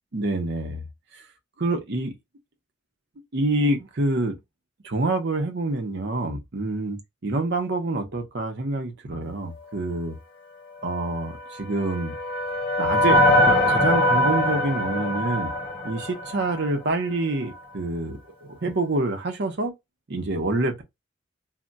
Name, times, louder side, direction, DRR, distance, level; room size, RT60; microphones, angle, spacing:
voice 1, 0.1-0.8 1.1-1.2 1.6-2.1 3.3-4.4 4.8-7.0 7.2-10.2 10.8-12.1 12.8-15.5 15.8-19.7 20.1-20.8, right 2 dB, 60° right, 0.7 m, -27 dB
sound 1, 11.4-16.8, left 1 dB, 30° left, 0.6 m, -22 dB
2.2 x 2.2 x 3.9 m
head